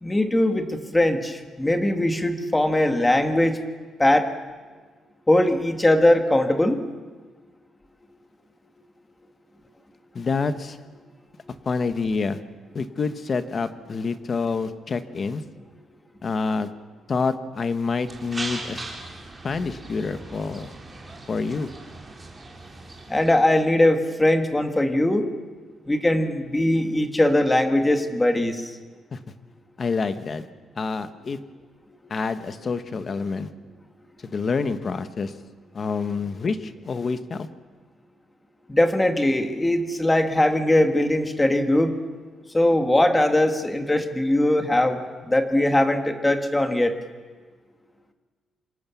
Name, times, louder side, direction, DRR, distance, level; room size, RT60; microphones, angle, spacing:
voice 1, 0.0-3.6 4.0-4.3 5.3-6.8 23.1-25.3 25.8-28.8 38.7-41.9 42.5-46.9, left 1 dB, 10° left, 6 dB, 1.7 m, -20 dB
voice 2, 10.1-10.8 11.6-12.4 12.7-15.4 16.2-16.7 17.1-18.9 19.4-20.7 21.3-21.7 29.1-29.2 29.8-30.4 30.8-31.4 32.1-33.5 34.2-35.3 35.7-37.5, left 4 dB, 30° left, 10 dB, 1.2 m, -27 dB
sound 1, 18.1-23.4, right 2 dB, 15° right, 3.5 m, -39 dB
27.0 x 25.5 x 7.1 m, 1.4 s
cardioid pair, 180°, 0 cm